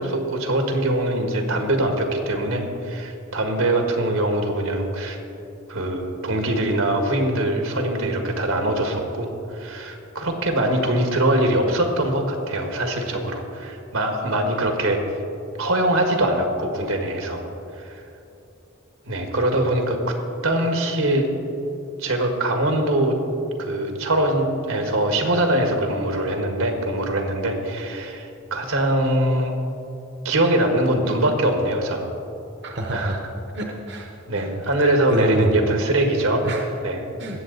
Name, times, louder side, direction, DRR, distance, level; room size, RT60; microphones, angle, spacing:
voice 1, 0.0-5.2 5.7-15.0 15.6-17.4 17.7-18.0 19.0-20.2 20.4-21.3 22.0-23.2 23.6-29.6 30.2-32.1 32.9-33.2 34.3-36.4 36.8-37.1, right 1 dB, 85° right, 3 dB, 1.6 m, -22 dB
voice 2, 32.6-33.2 33.5-34.5 35.1-35.5 36.4-36.6 37.2-37.4, right 1 dB, 55° right, 2 dB, 0.9 m, -27 dB
20.0 x 7.8 x 4.0 m, 2.8 s
head